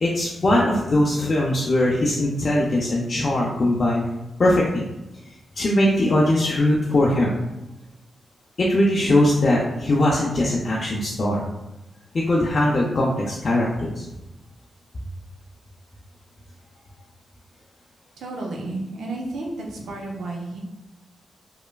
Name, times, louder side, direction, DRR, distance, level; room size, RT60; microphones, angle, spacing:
voice 1, 0.0-4.0 4.4-4.9 5.6-7.3 8.6-11.4 12.1-14.0, left 1 dB, 55° left, -4 dB, 0.4 m, -20 dB
voice 2, 18.2-20.6, right 2 dB, 85° right, -1 dB, 0.5 m, -32 dB
3.1 x 2.1 x 2.2 m, 0.99 s
supercardioid pair, 50°, 0 cm